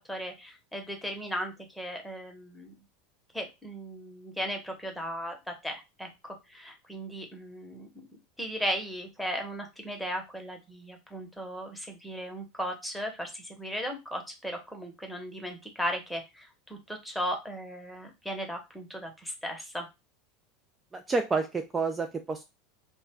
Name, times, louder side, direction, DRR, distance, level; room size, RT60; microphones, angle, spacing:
voice 1, 0.1-2.7 3.3-7.9 8.4-19.9, equal, ahead, 2 dB, 0.8 m, -36 dB
voice 2, 20.9-22.4, right 4 dB, 20° right, 5 dB, 0.3 m, -29 dB
2.3 x 2.1 x 3.4 m, 0.24 s
figure-of-eight pair, 80°, 0 cm